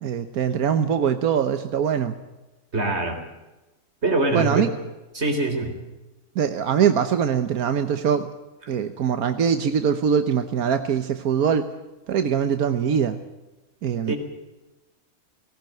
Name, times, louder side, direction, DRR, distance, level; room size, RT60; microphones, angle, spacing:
voice 1, 0.0-2.2 4.3-4.7 6.3-8.3 8.7-11.7 12.1-13.2 13.8-14.1, right 7 dB, 90° right, 8 dB, 1.5 m, -22 dB
voice 2, 2.7-3.2 4.0-4.7 5.1-5.7 14.1-14.2, right 2 dB, 50° right, 4 dB, 4.2 m, -23 dB
18.5 x 18.0 x 9.2 m, 1.1 s
omnidirectional pair, 1.5 m